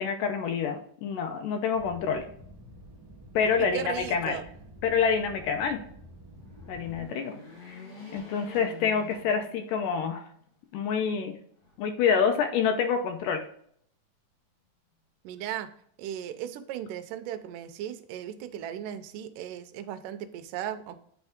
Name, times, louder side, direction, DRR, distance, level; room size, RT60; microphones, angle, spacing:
voice 1, 0.0-2.3 3.3-4.4 4.8-5.8 6.7-7.4 7.7-7.8 8.1-10.2 10.7-11.4 11.8-13.4, left 6 dB, 80° left, 6 dB, 2.2 m, -27 dB
sound 1, 1.7-7.1, equal, 60° right, 1.1 m, -49 dB
voice 2, 3.6-4.4 15.2-15.7 16.0-21.0, right 10 dB, 80° right, 8 dB, 2.1 m, -36 dB
sound 2, 6.3-9.9 10.4-10.5 11.6-12.4, left 4 dB, 55° left, 1.1 m, -46 dB
8.7 x 3.5 x 3.5 m, 0.64 s
omnidirectional pair, 4.0 m